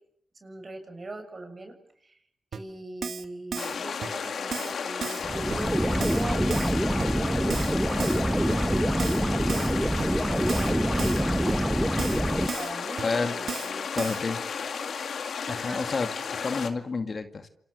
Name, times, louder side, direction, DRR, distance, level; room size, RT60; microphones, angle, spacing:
voice 1, 0.4-2.2 2.5-8.4 8.8-12.0 12.4-13.9 15.5-15.9, right 2 dB, 40° right, 6 dB, 6.8 m, -41 dB
Keyboard (musical), 2.5-2.6 3.0-3.3 3.5-3.8 4.0-4.1 4.5-4.7 5.0-5.2 5.5-5.6 6.0-6.2 6.5-6.7 7.0-7.1 7.5-7.7 8.0-8.2 8.5-8.6 9.0-9.2 9.5-9.7 10.0-10.1 10.5-10.7 11.0-11.2 11.5-11.6 12.0-12.2 12.5-12.7 13.0-13.1 13.5-13.7 14.0-14.2, right 6 dB, 70° right, 1.9 m, -34 dB
sound 1, 3.6-16.7, left 6 dB, 70° left, 2.1 m, -33 dB
sound 2, 5.2-12.5, right 1 dB, 5° right, 1.3 m, -26 dB
voice 2, 13.0-13.3 13.9-14.4 15.5-17.5, left 4 dB, 50° left, 8 dB, 2.3 m, -30 dB
28.0 x 27.5 x 6.6 m, 0.72 s
cardioid pair, 60°, 0 cm